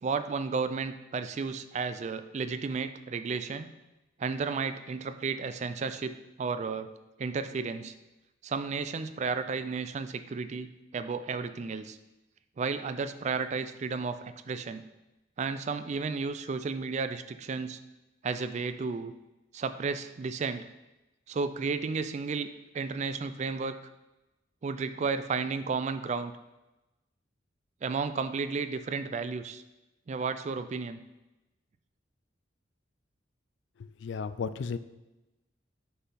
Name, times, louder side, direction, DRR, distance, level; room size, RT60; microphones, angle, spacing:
voice 1, 0.0-3.7 4.2-6.9 7.2-7.9 8.4-10.7 10.9-12.0 12.6-14.8 15.4-17.8 18.2-19.1 19.5-20.6 21.3-22.5 22.7-23.8 24.6-26.3 27.8-29.6 30.1-31.0, right 4 dB, 35° right, 11 dB, 0.3 m, -33 dB
voice 2, 34.0-34.8, left 5 dB, 65° left, 13 dB, 0.3 m, -33 dB
5.7 x 5.6 x 4.1 m, 1.0 s
head